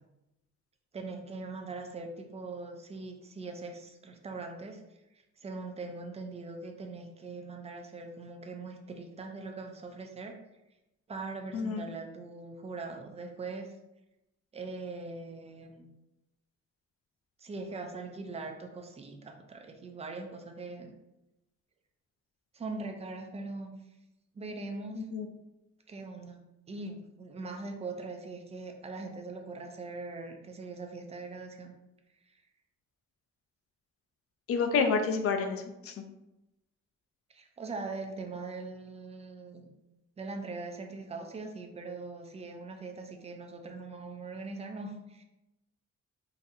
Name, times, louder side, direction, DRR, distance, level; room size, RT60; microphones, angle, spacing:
voice 1, 0.9-4.8 5.1-10.4 11.1-13.7 14.5-15.9 17.4-20.9 22.5-23.8 24.3-25.1 25.9-31.7 32.2-32.4 37.3-39.7 40.2-45.2, right 3 dB, 20° right, 3 dB, 0.4 m, -41 dB
voice 2, 11.5-11.9 25.1-25.3 34.5-35.9, left 5 dB, 50° left, 5 dB, 0.4 m, -29 dB
3.9 x 2.6 x 2.6 m, 0.93 s
wide cardioid pair, 150°, 29 cm